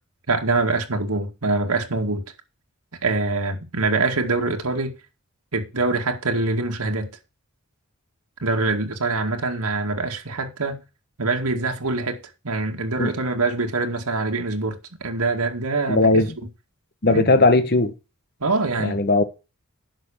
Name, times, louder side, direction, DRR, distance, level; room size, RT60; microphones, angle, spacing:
voice 1, 0.3-2.2 3.0-4.9 5.5-7.1 8.4-10.8 11.2-16.1 17.1-17.3 18.4-19.0, right 3 dB, 90° right, 2.1 m, -24 dB
voice 2, 15.9-16.3 17.0-17.9 18.8-19.2, left 2 dB, 45° left, 1.2 m, -18 dB
10.5 x 6.2 x 7.1 m
head